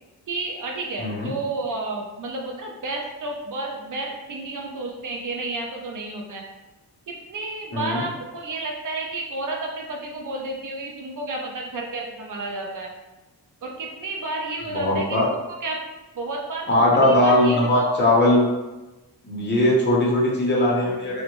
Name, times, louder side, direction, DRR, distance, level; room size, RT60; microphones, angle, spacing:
voice 1, 0.3-6.4 7.1-12.9 13.6-15.2 15.6-15.8 16.2-18.0, right 2 dB, 55° right, 0 dB, 0.4 m, -31 dB
voice 2, 1.0-1.3 7.7-8.0 14.7-15.3 16.7-18.4 19.2-21.2, left 1 dB, 30° left, -5 dB, 0.6 m, -19 dB
2.6 x 2.0 x 2.9 m, 1.1 s
wide cardioid pair, 150°, 39 cm